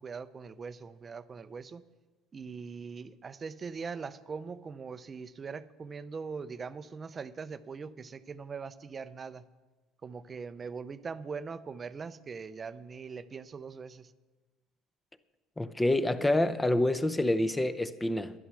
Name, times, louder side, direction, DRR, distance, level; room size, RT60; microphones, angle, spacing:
voice 1, 0.0-1.8 2.3-9.4 10.0-14.1, right 5 dB, 30° right, 0.6 m, -41 dB
voice 2, 15.6-18.3, left 1 dB, 10° left, 0.7 m, -27 dB
11.5 x 11.0 x 6.2 m
supercardioid pair, 105°, 0 cm